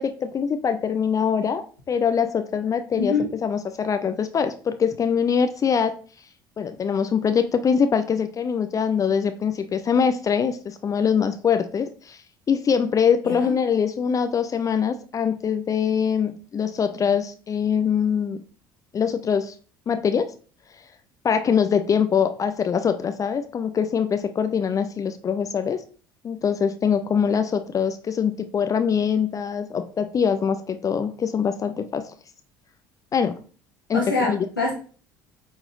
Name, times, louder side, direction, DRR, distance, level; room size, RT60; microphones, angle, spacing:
voice 1, 0.0-6.0 6.6-12.2 12.5-18.4 18.9-19.5 19.9-20.3 21.2-25.8 26.2-32.1 33.1-33.4 33.9-34.5, left 7 dB, 30° left, 9 dB, 0.7 m, -23 dB
voice 2, 33.9-34.7, left 3 dB, 85° left, -5 dB, 1.8 m, -24 dB
8.8 x 4.0 x 3.9 m, 0.41 s
figure-of-eight pair, 60°, 11 cm